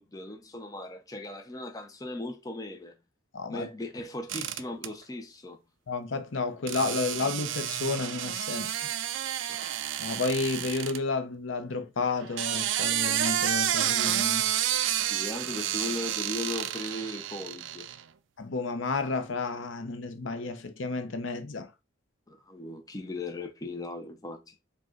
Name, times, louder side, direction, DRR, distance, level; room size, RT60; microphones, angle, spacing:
voice 1, 0.0-3.0 3.5-5.6 9.5-9.7 15.1-17.9 22.3-24.5, left 2 dB, 20° left, 0.6 m, -38 dB
voice 2, 3.3-3.7 5.9-8.8 10.0-14.5 18.4-21.7, left 3 dB, 80° left, 0.7 m, -31 dB
sound 1, 4.3-4.9 6.7-11.0 12.2-18.0, right 11 dB, 70° right, 0.4 m, -30 dB
4.9 x 2.3 x 3.8 m
head